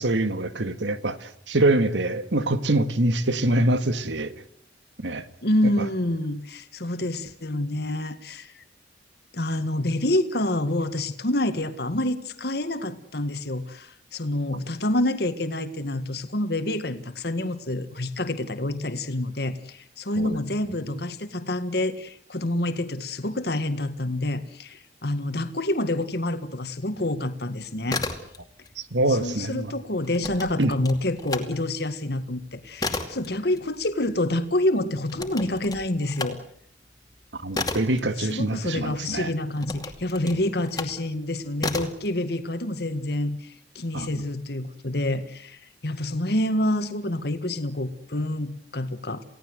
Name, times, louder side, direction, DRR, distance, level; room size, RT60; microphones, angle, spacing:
voice 1, 0.0-4.3 5.0-5.3 20.2-20.4 28.8-29.7 30.6-30.7 37.3-39.3 43.9-44.1, right 2 dB, 80° right, 1.9 m, -24 dB
voice 2, 5.4-8.6 9.3-28.0 29.1-36.4 38.2-49.2, left 1 dB, 60° left, 1.8 m, -27 dB
sound 1, 27.7-28.7 29.0-31.5 31.9-38.9 39.5-41.0 41.6-42.1, left 3 dB, 20° left, 2.4 m, -33 dB
29.0 x 17.5 x 8.0 m
head